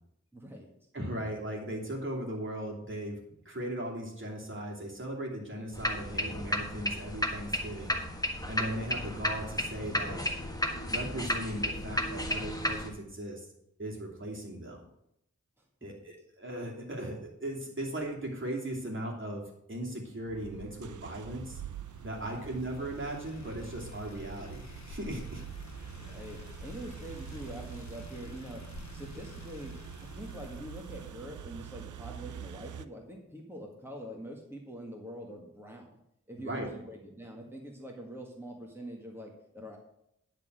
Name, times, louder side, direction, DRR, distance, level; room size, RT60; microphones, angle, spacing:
voice 1, 0.3-0.7 15.8-16.1 22.2-22.4 25.9-28.6 28.9-35.9 36.3-39.8, equal, 5° right, -1 dB, 1.9 m, -45 dB
voice 2, 0.9-8.0 8.5-10.2 10.8-13.5 13.8-14.8 15.8-21.6 22.0-25.4 36.4-36.7, right 1 dB, 40° right, -1 dB, 2.8 m, -38 dB
sound 1, 5.7-12.9, equal, 10° left, 1.5 m, -33 dB
sound 2, 20.2-32.9, right 9 dB, 85° right, 0.5 m, -45 dB
sound 3, 21.7-31.1, left 4 dB, 65° left, 1.0 m, -50 dB
10.5 x 4.2 x 7.8 m, 0.78 s
wide cardioid pair, 50°, 30 cm